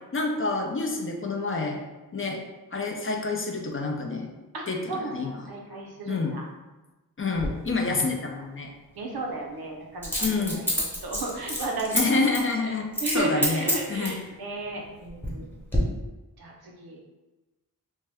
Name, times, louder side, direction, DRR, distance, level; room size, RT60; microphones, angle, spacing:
voice 1, 0.1-1.8 2.1-2.4 2.7-4.3 4.7-5.4 6.1-6.3 7.2-8.7 10.2-10.6 11.9-12.9 13.1-14.1, left 3 dB, 35° left, 2 dB, 0.4 m, -28 dB
voice 2, 4.5-6.4 8.9-12.1 12.3-12.5 13.0-15.5 16.4-17.0, right 2 dB, 80° right, -1 dB, 0.6 m, -34 dB
Coin (dropping), 7.4-7.5 10.0-12.0 12.3-12.5 12.9-13.2 13.4-14.2 14.9-15.4 15.7-15.8, equal, 5° left, 0.9 m, -27 dB
2.7 x 2.1 x 3.4 m, 1.1 s
wide cardioid pair, 60°, 37 cm